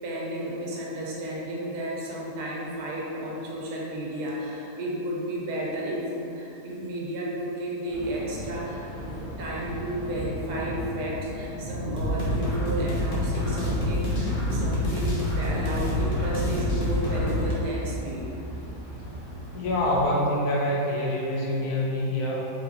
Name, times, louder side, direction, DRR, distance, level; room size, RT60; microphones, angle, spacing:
voice 1, 0.0-18.2, right 1 dB, 80° right, -4 dB, 1.3 m, -33 dB
Thunder, 7.9-20.1, equal, 90° left, 2.0 m, -37 dB
sound 1, 12.0-17.5, left 1 dB, 45° left, 0.7 m, -27 dB
voice 2, 19.5-22.5, left 1 dB, 75° left, -4 dB, 1.2 m, -26 dB
4.6 x 3.4 x 2.6 m, 2.9 s
omnidirectional pair, 1.7 m